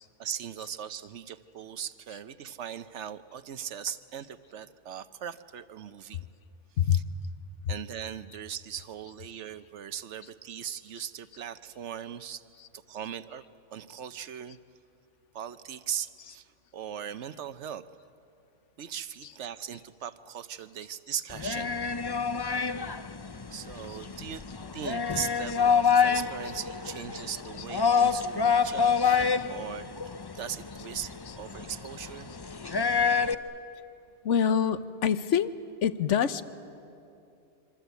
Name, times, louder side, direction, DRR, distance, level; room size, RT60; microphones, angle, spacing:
voice 1, 0.2-6.3 6.9-7.0 7.7-12.4 12.7-13.4 13.7-14.6 15.3-17.8 18.8-21.8 23.5-24.4 24.7-30.0 30.3-32.3, right 9 dB, 75° right, 13 dB, 1.1 m, -39 dB
sound 1, 21.3-33.3, left 6 dB, 30° left, 0.5 m, -27 dB
voice 2, 34.2-35.5 35.8-36.4, left 8 dB, 80° left, 13 dB, 1.2 m, -25 dB
26.0 x 24.5 x 8.2 m, 2.6 s
omnidirectional pair, 1.2 m